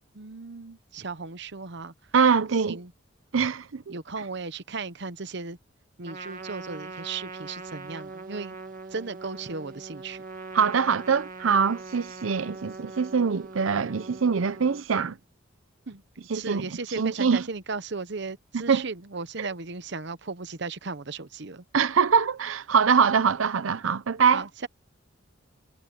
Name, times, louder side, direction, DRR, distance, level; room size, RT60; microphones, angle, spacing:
voice 1, 0.1-1.9 2.7-2.9 3.9-5.6 6.0-8.6 8.9-10.2 15.9-21.6 24.3-24.7, right 4 dB, 60° right, 1.0 m, -36 dB
voice 2, 2.1-2.8 3.3-3.9 10.5-15.2 16.3-16.6 17.0-17.4 18.7-18.9 19.4-19.5 21.7-24.4, right 6 dB, 90° right, 0.6 m, -23 dB
Trumpet, 6.0-14.8, right 3 dB, 40° right, 2.0 m, -41 dB
head